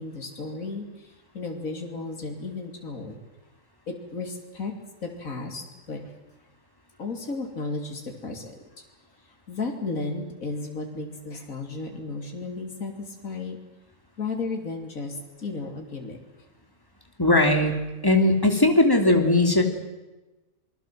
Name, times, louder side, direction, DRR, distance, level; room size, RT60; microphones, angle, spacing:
voice 1, 0.0-3.2 3.9-4.8 5.0-6.1 7.0-8.8 9.5-13.6 14.2-16.2, left 3 dB, 75° left, 3 dB, 3.4 m, -34 dB
voice 2, 17.2-17.7 18.0-19.6, left 2 dB, 15° left, 5 dB, 3.3 m, -19 dB
28.0 x 21.5 x 7.6 m, 1.1 s
omnidirectional pair, 1.5 m